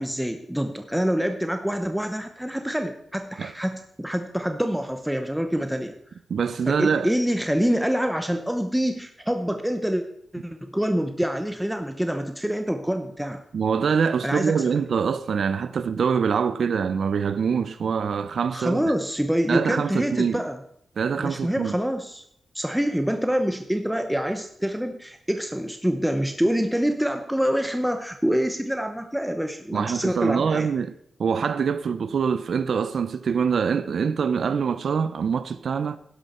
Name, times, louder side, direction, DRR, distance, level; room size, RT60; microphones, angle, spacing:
voice 1, 0.0-5.9 6.7-10.0 10.3-13.4 14.2-14.7 18.5-20.6 21.2-22.2 22.5-30.7, equal, 5° right, 0.9 m, -26 dB
voice 2, 6.3-7.1 13.5-18.9 19.5-20.4 21.0-21.8 29.7-30.9 31.2-36.0, right 6 dB, 75° right, 0.5 m, -24 dB
12.0 x 11.0 x 4.4 m
cardioid pair, 85°, 0 cm